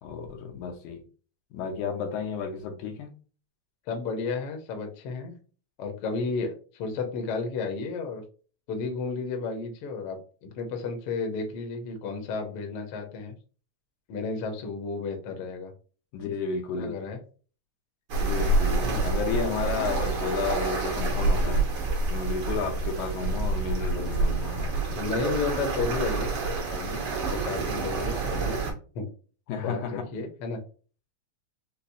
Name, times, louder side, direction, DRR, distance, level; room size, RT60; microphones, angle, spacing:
voice 1, 0.0-1.0 1.5-3.2 16.1-17.0 18.2-21.7 22.1-25.0 29.5-30.1, left 5 dB, 90° left, 2.1 m, -32 dB
voice 2, 3.9-5.3 5.8-8.2 8.7-13.3 14.1-15.7 16.7-17.2 18.8-19.0 25.0-26.4 26.7-29.1 29.6-30.6, left 4 dB, 70° left, 1.3 m, -32 dB
sound 1, 18.1-28.7, right 3 dB, 65° right, 1.2 m, -27 dB
5.7 x 2.0 x 2.6 m
omnidirectional pair, 3.4 m